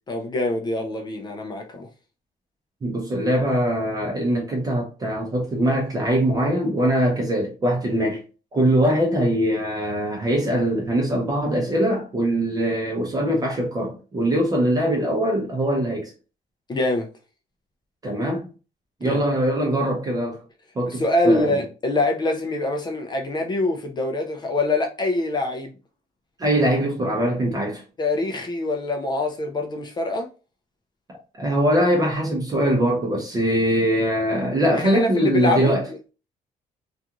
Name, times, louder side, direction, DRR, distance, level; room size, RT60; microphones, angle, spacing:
voice 1, 0.1-1.9 16.7-17.1 19.0-19.2 20.8-25.7 28.0-30.3 34.7-35.7, left 2 dB, 30° left, 0.4 m, -24 dB
voice 2, 2.8-8.2 8.5-16.1 18.0-18.5 19.0-20.4 20.8-21.6 26.4-27.8 31.4-35.9, right 1 dB, 25° right, 0.6 m, -22 dB
2.4 x 2.4 x 2.8 m
cardioid pair, 155°, 15 cm